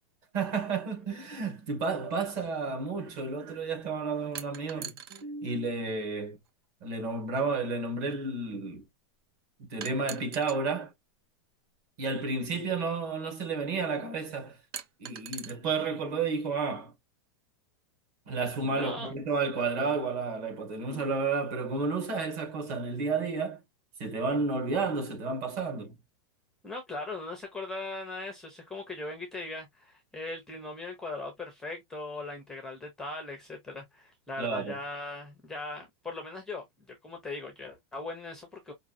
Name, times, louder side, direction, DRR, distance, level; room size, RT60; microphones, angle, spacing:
voice 1, 0.3-6.4 6.8-8.8 9.6-10.9 12.0-14.6 15.0-16.9 18.3-23.6 24.0-25.9 34.4-34.8, right 4 dB, 40° right, 2.1 m, -31 dB
sound 1, 4.3-5.2 6.5-6.6 9.8-10.6 12.0-12.1 14.7-15.5, right 9 dB, 60° right, 0.8 m, -41 dB
voice 2, 18.7-19.2 26.6-38.7, left 2 dB, 5° left, 0.6 m, -39 dB
5.3 x 2.8 x 2.6 m
supercardioid pair, 180°, 14 cm